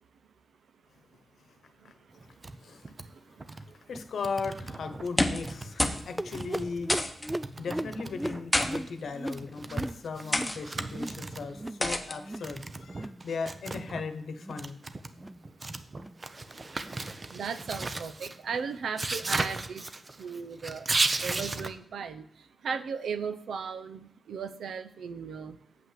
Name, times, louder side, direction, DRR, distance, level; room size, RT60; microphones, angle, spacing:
voice 1, 1.8-3.8 7.3-7.4 17.0-19.8 20.2-20.9 21.2-25.6, right 6 dB, 85° right, 10 dB, 0.7 m, -37 dB
sound 1, 2.2-2.6 2.8-3.1 3.4-3.7 3.9-5.1 5.4-7.0 7.3-11.7 12.4-14.0 14.4-21.7, right 2 dB, 30° right, 0.7 m, -36 dB
voice 2, 2.3-2.8 3.9-7.0 7.6-14.8, left 4 dB, 75° left, 9 dB, 1.0 m, -37 dB
sound 2, 5.0-5.5 5.8-6.1 6.3-6.4 6.9-7.3 8.2-8.7 9.5-9.7 10.3-10.6 11.8-12.2, left 1 dB, 10° left, 1.0 m, -28 dB
sound 3, 6.2-11.2 11.5-11.9 12.1-12.5 12.8-13.2 13.6-13.9 14.3-14.7 15.1-15.4 15.9-16.2 16.8-17.0 17.6-17.8 18.5-18.6 19.3-19.4, right 1 dB, 10° right, 0.4 m, -38 dB
8.2 x 5.8 x 7.5 m, 0.67 s
wide cardioid pair, 105°, 0 cm